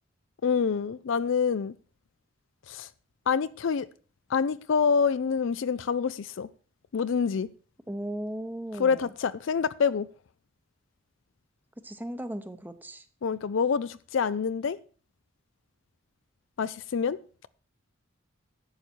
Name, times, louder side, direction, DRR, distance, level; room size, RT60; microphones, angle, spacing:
voice 1, 0.4-1.7 2.7-2.9 3.3-3.9 4.3-6.5 6.9-7.5 8.8-10.1 13.2-14.8 16.6-17.2, left 6 dB, 65° left, 0.4 m, -26 dB
voice 2, 7.9-9.1 11.8-13.0, right 1 dB, 10° right, 0.8 m, -36 dB
11.0 x 8.6 x 4.5 m
head